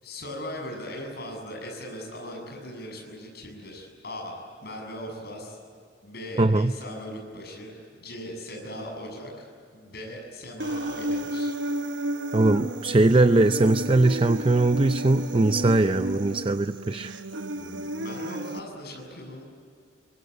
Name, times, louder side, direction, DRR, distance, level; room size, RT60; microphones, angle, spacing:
voice 1, 0.0-5.6 6.0-9.5 9.7-11.6 17.5-19.4, left 1 dB, 60° left, 1 dB, 7.1 m, -39 dB
voice 2, 6.4-6.7 12.3-17.1, right 2 dB, 30° right, 10 dB, 0.5 m, -21 dB
Human voice, 10.6-18.6, right 1 dB, 90° right, 1.0 m, -32 dB
24.0 x 23.0 x 9.6 m, 2.3 s
head